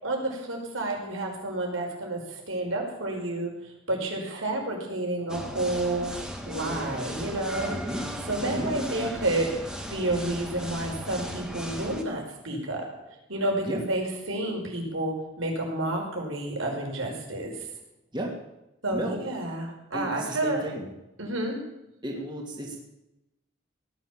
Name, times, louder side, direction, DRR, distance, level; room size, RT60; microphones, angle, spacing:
voice 1, 0.0-6.1 6.5-7.8 8.3-9.5 9.9-12.9 13.3-17.7 18.8-20.7 21.2-21.6, right 2 dB, 85° right, 1 dB, 5.5 m, -30 dB
sound 1, 5.3-12.0, equal, 5° right, 1.9 m, -36 dB
voice 2, 7.6-8.0 8.4-8.7 13.6-13.8 18.1-18.3 18.9-19.2 19.9-20.9 22.0-22.8, right 1 dB, 25° right, -1 dB, 2.9 m, -33 dB
17.5 x 10.5 x 7.5 m, 0.92 s
head